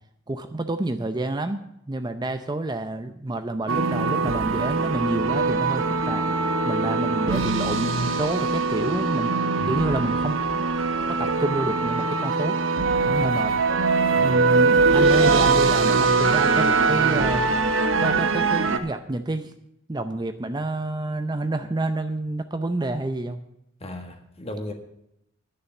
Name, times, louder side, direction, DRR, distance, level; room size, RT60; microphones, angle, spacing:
voice 1, 0.3-6.2 6.6-10.4 11.1-12.6 13.1-13.5 14.2-17.5 18.0-19.5 19.9-23.4, right 2 dB, 20° right, 8 dB, 0.6 m, -28 dB
sound 1, 3.7-18.8, right 4 dB, 80° right, 1.0 m, -22 dB
voice 2, 9.6-9.9 14.1-14.4 23.8-24.7, left 1 dB, 30° left, 4 dB, 1.7 m, -36 dB
11.0 x 6.6 x 8.9 m, 0.78 s
head